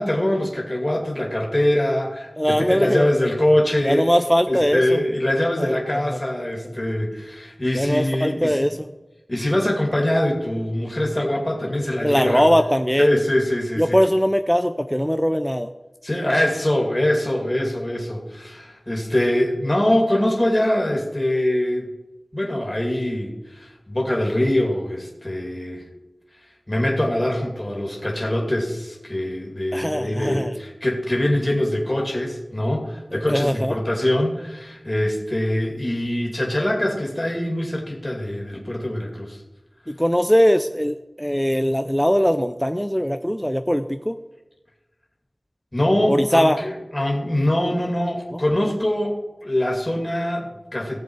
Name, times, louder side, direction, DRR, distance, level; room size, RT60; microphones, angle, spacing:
voice 1, 0.0-4.1 4.5-8.7 9.3-12.4 13.0-14.0 16.0-21.9 22.3-25.8 26.7-39.4 45.7-49.1 49.4-51.0, left 1 dB, 25° left, 0 dB, 2.5 m, -23 dB
voice 2, 2.4-3.1 3.8-5.0 5.6-6.2 7.7-8.8 12.0-13.2 13.8-15.7 29.7-30.5 33.1-33.8 39.9-44.2 46.1-46.6 48.3-48.4, equal, 5° left, 8 dB, 0.5 m, -21 dB
17.0 x 7.0 x 4.8 m, 1.1 s
wide cardioid pair, 55°, 0 cm